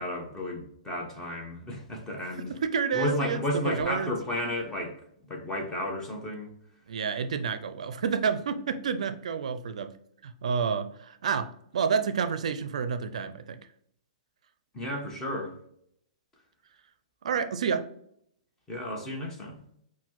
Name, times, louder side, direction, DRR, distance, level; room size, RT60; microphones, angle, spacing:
voice 1, 0.0-2.5 2.9-4.9 5.3-6.5 14.7-15.5 18.7-19.6, left 1 dB, 15° left, 0 dB, 1.2 m, -32 dB
voice 2, 2.5-4.1 6.9-10.0 10.2-13.6 17.2-17.9, right 6 dB, 70° right, 9 dB, 0.4 m, -29 dB
5.8 x 2.2 x 3.0 m, 0.68 s
hypercardioid pair, 125°, 4 cm